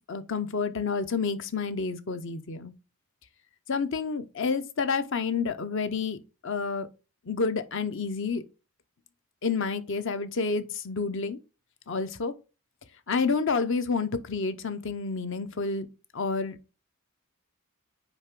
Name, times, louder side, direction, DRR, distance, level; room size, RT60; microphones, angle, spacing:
voice 1, 0.1-2.7 3.7-6.9 7.3-8.4 9.4-11.4 11.9-12.3 13.1-15.9 16.1-16.6, left 4 dB, 60° left, 0.7 m, -29 dB
9.2 x 3.3 x 3.7 m
head